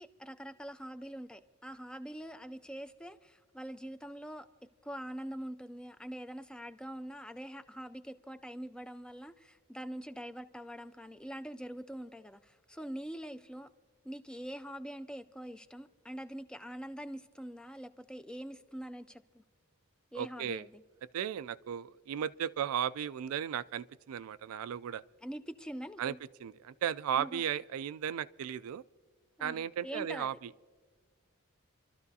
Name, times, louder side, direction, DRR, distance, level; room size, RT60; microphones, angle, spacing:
voice 1, 0.0-4.5 4.8-13.7 14.0-19.4 20.1-20.8 25.2-26.2 27.1-27.4 29.4-30.3, equal, 5° left, 0.3 m, -44 dB
voice 2, 20.1-20.7 21.1-25.0 26.0-26.1 26.4-28.8 29.4-30.3, right 9 dB, 85° right, 0.3 m, -35 dB
28.0 x 12.5 x 2.7 m
head